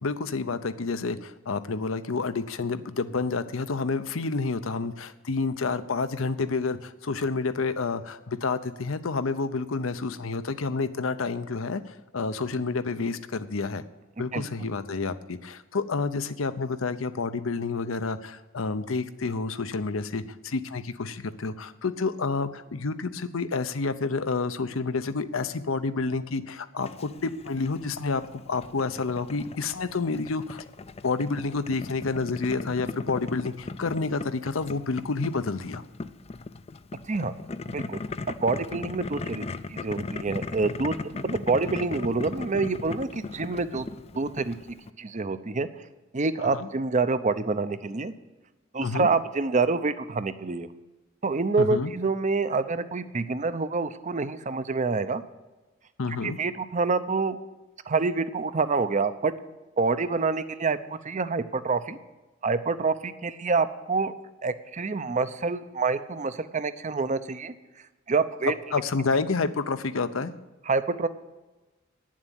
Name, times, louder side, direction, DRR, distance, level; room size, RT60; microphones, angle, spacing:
voice 1, 0.0-13.8 14.2-30.6 31.0-35.8 46.5-46.7 48.8-49.1 51.6-51.9 56.0-56.4 68.7-70.3, left 4 dB, 75° left, 11 dB, 0.7 m, -29 dB
voice 2, 14.3-14.7 37.1-37.3 37.7-38.0 38.4-43.9 44.2-44.6 45.0-45.7 46.1-48.1 48.7-50.7 51.2-55.2 56.2-57.4 57.9-59.3 59.8-62.0 62.4-64.1 64.4-67.5 68.1-68.5 70.7-71.1, right 4 dB, 35° right, 13 dB, 0.7 m, -27 dB
Boiling, 26.8-44.9, left 3 dB, 30° left, 0.5 m, -38 dB
10.0 x 7.5 x 9.2 m, 1.1 s
head